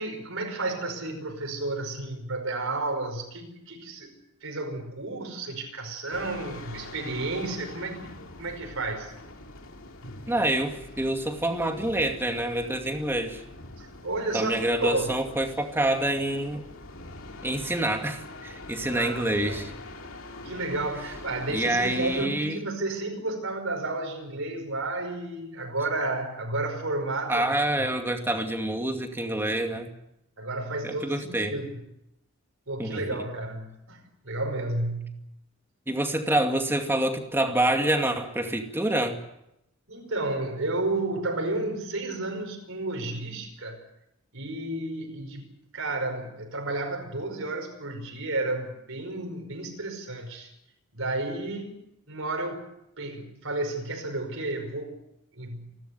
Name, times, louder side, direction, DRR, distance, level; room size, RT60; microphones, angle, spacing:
voice 1, 0.0-4.1 4.4-9.1 13.8-15.2 18.8-19.6 20.4-27.5 30.4-31.8 32.7-35.2 39.9-43.8 44.3-50.5 50.9-51.8 52.1-52.7 53.0-55.0 55.3-55.7, right 2 dB, 70° right, 3 dB, 5.4 m, -32 dB
sound 1, 6.1-22.3, left 2 dB, 65° left, 2.9 m, -44 dB
voice 2, 10.3-13.4 14.3-16.6 17.4-19.7 21.5-22.6 27.3-29.9 30.8-31.5 32.8-33.0 35.9-39.2, right 1 dB, 10° right, 4 dB, 2.4 m, -27 dB
29.0 x 12.5 x 9.5 m, 0.84 s
head